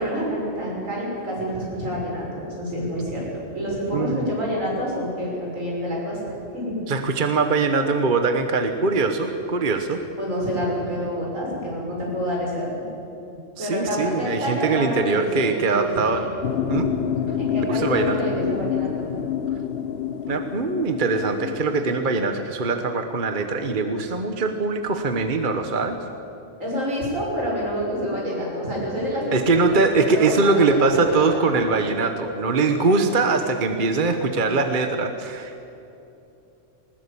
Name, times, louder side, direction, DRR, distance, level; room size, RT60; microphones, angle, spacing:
voice 1, 0.0-6.9 10.2-12.9 13.6-16.3 17.3-19.1 26.6-33.5, equal, 80° right, -4 dB, 7.0 m, -28 dB
voice 2, 3.9-4.2 6.9-10.0 11.8-11.9 13.6-16.3 16.7-16.9 17.7-18.2 20.3-26.0 29.3-35.6, right 3 dB, 40° right, 7 dB, 1.2 m, -22 dB
sound 1, 16.4-21.9, left 8 dB, 50° left, 1.1 m, -27 dB
20.0 x 20.0 x 8.6 m, 2.9 s
omnidirectional pair, 1.3 m